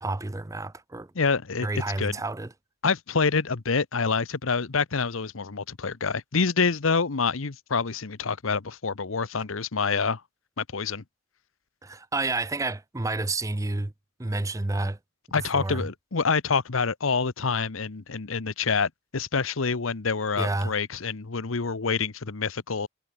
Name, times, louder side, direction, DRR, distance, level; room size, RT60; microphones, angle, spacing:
voice 1, 0.0-1.1 1.6-2.5 11.8-13.9 14.2-15.0 15.5-15.8 20.4-20.7, right 2 dB, 15° right, 0.5 m, -29 dB
voice 2, 1.1-1.7 2.0-2.2 2.8-10.2 10.6-11.0 15.3-22.9, left 5 dB, 85° left, 1.0 m, -27 dB
head